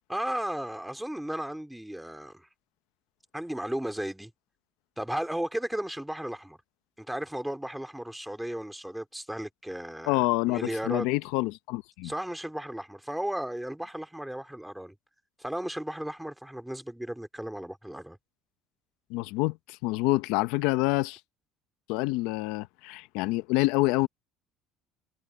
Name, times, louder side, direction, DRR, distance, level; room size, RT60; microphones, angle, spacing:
voice 1, 0.1-2.5 3.3-4.3 5.0-6.6 7.0-11.1 12.0-14.9 15.4-18.2, right 1 dB, ahead, 2.4 m, -35 dB
voice 2, 10.1-12.1 19.1-21.2 21.9-24.1, left 20 dB, 75° left, 0.7 m, -27 dB
cardioid pair, 165°, 0 cm